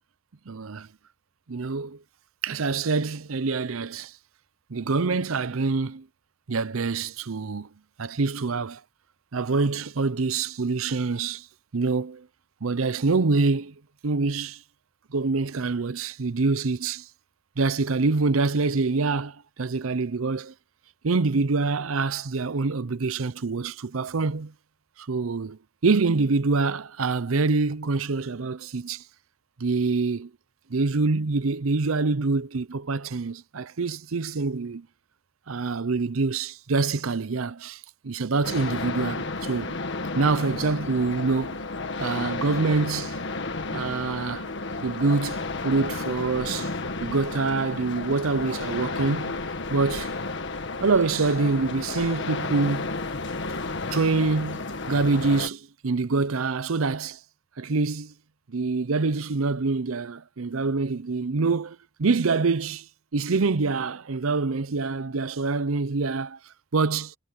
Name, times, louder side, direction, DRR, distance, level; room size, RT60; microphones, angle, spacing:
voice 1, 0.5-0.9 1.5-2.0 2.4-4.1 4.7-6.1 6.5-7.7 8.0-8.8 9.3-11.5 11.7-12.3 12.6-13.7 14.0-14.6 15.1-17.1 17.6-20.5 21.0-24.5 25.0-29.0 29.6-30.3 30.7-34.9 35.5-39.7 40.1-41.6 42.0-43.2 43.7-44.5 44.8-46.7 47.0-49.4 49.7-50.1 50.8-52.9 53.9-57.2 57.6-58.1 58.5-62.9 63.1-66.4 66.7-67.1, right 3 dB, 85° right, 0.7 m, -25 dB
sound 1, 38.4-55.5, left 3 dB, 60° left, 1.7 m, -32 dB
head